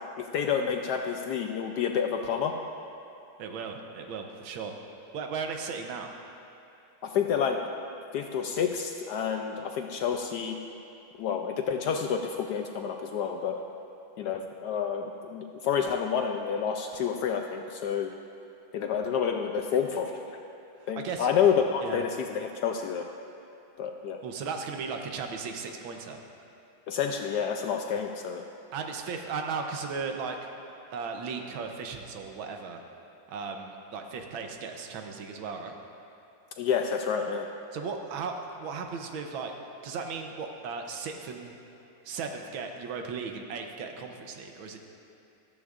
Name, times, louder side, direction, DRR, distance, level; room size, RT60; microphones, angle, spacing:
voice 1, 0.2-2.5 7.0-7.6 8.1-10.6 11.2-13.6 14.2-18.1 18.7-20.1 20.9-23.1 23.8-24.2 26.9-28.4 36.6-37.5, left 7 dB, 75° left, 4 dB, 1.0 m, -29 dB
voice 2, 3.4-4.8 5.1-6.1 20.8-21.3 21.8-22.0 24.2-26.2 28.7-30.5 30.9-32.8 33.3-35.7 37.7-39.5 39.8-41.5 42.0-44.8, right 5 dB, 80° right, 4 dB, 1.6 m, -36 dB
14.0 x 13.0 x 2.5 m, 2.8 s
omnidirectional pair, 2.2 m